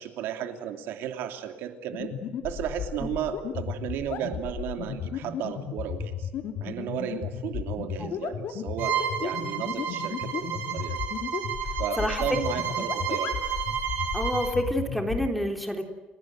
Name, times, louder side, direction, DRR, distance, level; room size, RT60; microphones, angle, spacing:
voice 1, 0.0-2.1 2.4-6.3 6.6-11.0 11.8-13.3, right 9 dB, 85° right, 7 dB, 2.9 m, -34 dB
sound 1, 1.9-15.3, left 9 dB, 65° left, 3.1 m, -33 dB
Bowed string instrument, 8.8-14.6, right 8 dB, 65° right, 6.4 m, -31 dB
voice 2, 14.1-15.8, equal, ahead, 4 dB, 3.6 m, -28 dB
29.5 x 18.5 x 7.9 m, 1.3 s
cardioid pair, 140°, 4 cm